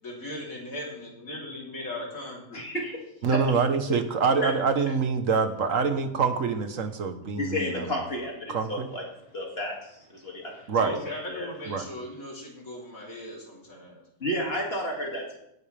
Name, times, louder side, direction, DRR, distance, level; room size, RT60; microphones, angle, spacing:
voice 1, 0.0-2.6 10.8-14.0, left 1 dB, 75° left, -4 dB, 4.0 m, -38 dB
voice 2, 2.5-2.9 3.3-3.4 4.4-4.5 7.4-9.0 9.3-11.5 14.2-15.4, equal, 45° left, -1 dB, 2.6 m, -32 dB
voice 3, 3.2-8.0 8.5-8.9 10.7-10.9 11.7-11.9, right 5 dB, 70° right, 8 dB, 1.5 m, -25 dB
16.0 x 10.5 x 3.4 m, 0.81 s
omnidirectional pair, 1.4 m